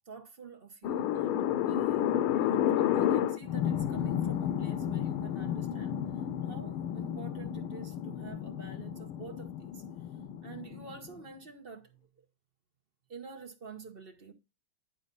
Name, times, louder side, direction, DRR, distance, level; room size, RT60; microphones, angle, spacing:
voice 1, 0.1-2.1 2.4-6.0 6.4-9.8 10.4-12.2 13.1-14.3, right 5 dB, 40° right, 0.9 m, -48 dB
sound 1, 0.8-11.2, left 10 dB, 90° left, 1.6 m, -31 dB
10.5 x 4.0 x 5.3 m
omnidirectional pair, 2.3 m